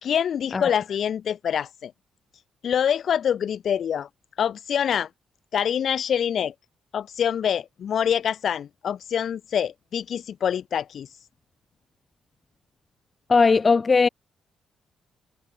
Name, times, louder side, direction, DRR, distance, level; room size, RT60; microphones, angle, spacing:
voice 1, 0.0-1.9 2.6-4.1 4.4-5.1 5.5-6.5 6.9-11.1, left 8 dB, 55° left, 2.1 m, -25 dB
voice 2, 13.3-14.1, left 4 dB, 35° left, 0.7 m, -18 dB
figure-of-eight pair, 40°, 0 cm